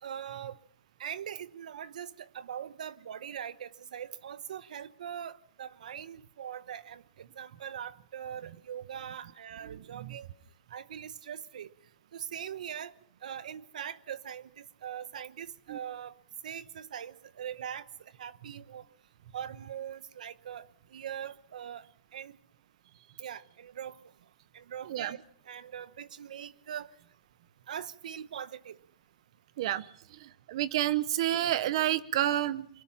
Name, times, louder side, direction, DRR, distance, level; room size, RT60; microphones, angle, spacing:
voice 1, 0.0-0.6 1.0-10.3 10.7-11.7 12.1-12.9 13.2-16.1 16.4-17.9 18.2-18.8 19.3-20.7 20.9-21.8 22.1-22.4 23.2-24.0 24.5-26.9 27.7-28.8, right 9 dB, 75° right, 1.1 m, -41 dB
voice 2, 9.7-10.2 15.7-15.8 24.8-25.2 29.6-29.9 30.2-32.7, right 13 dB, 45° right, 0.9 m, -30 dB
24.0 x 20.0 x 5.8 m
supercardioid pair, 175°, 4 cm